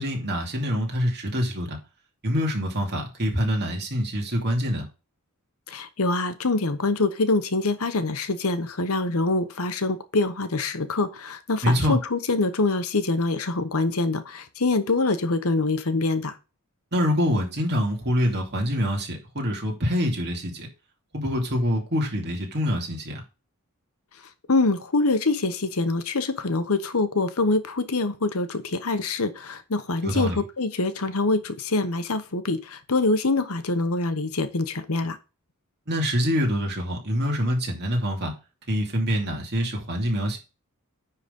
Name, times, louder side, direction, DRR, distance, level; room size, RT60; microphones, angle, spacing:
voice 1, 0.0-1.8 2.2-4.9 11.6-12.0 16.9-20.7 21.1-23.2 30.0-30.4 35.9-38.3 38.7-40.4, equal, 50° right, 1 dB, 2.6 m, -25 dB
voice 2, 5.7-16.3 24.5-35.2, left 3 dB, 70° left, 11 dB, 1.0 m, -25 dB
9.8 x 3.9 x 5.3 m, 0.31 s
head